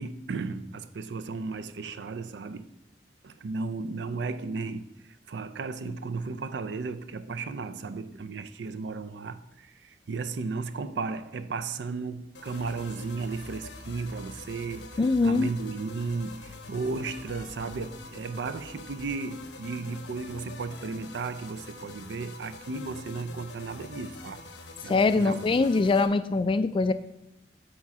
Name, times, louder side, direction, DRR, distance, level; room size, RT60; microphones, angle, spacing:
voice 1, 0.0-2.7 3.2-24.4 24.8-25.5, right 4 dB, 75° right, 0.5 m, -35 dB
sound 1, 12.3-26.1, left 3 dB, 85° left, 0.9 m, -45 dB
voice 2, 15.0-15.5 24.9-26.9, left 3 dB, 30° left, 0.3 m, -23 dB
8.6 x 3.6 x 6.0 m
head